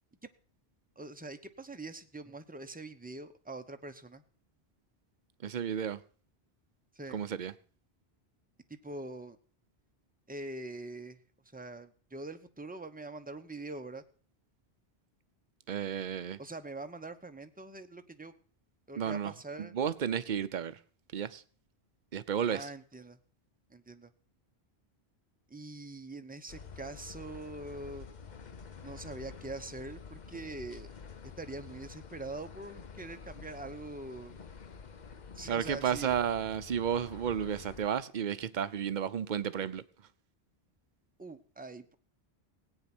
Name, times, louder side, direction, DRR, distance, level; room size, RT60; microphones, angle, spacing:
voice 1, 1.0-4.2 6.9-7.2 8.7-9.4 10.3-11.2 11.5-14.0 16.4-18.3 18.9-19.7 22.5-23.2 23.7-24.1 25.5-28.1 28.8-30.9 31.4-34.4 35.3-36.2 41.2-42.0, right 2 dB, 10° right, 0.8 m, -43 dB
voice 2, 5.4-6.0 7.1-7.5 15.7-16.4 19.0-19.3 19.6-20.8 21.1-21.4 22.1-22.7 35.5-39.8, right 8 dB, 50° right, 0.8 m, -32 dB
sound 1, 26.5-37.9, left 6 dB, 45° left, 0.9 m, -49 dB
17.5 x 9.0 x 6.1 m
omnidirectional pair, 1.1 m